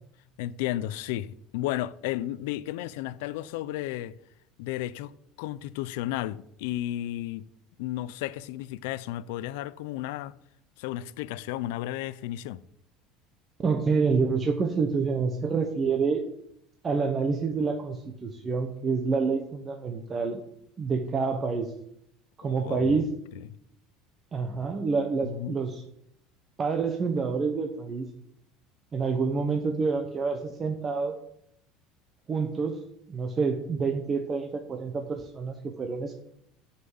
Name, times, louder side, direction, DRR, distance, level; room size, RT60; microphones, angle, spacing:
voice 1, 0.4-4.2 4.6-5.1 5.4-7.5 7.8-10.3 10.8-12.6 22.4-23.0 25.2-25.6, left 14 dB, 85° left, 0.5 m, -33 dB
voice 2, 13.6-16.2 16.8-20.4 20.8-21.7 22.4-23.1 24.3-25.8 26.6-28.1 28.9-31.1 32.3-32.8 33.1-36.1, right 4 dB, 20° right, 1.0 m, -27 dB
11.5 x 5.8 x 7.8 m
cardioid pair, 160°, 0 cm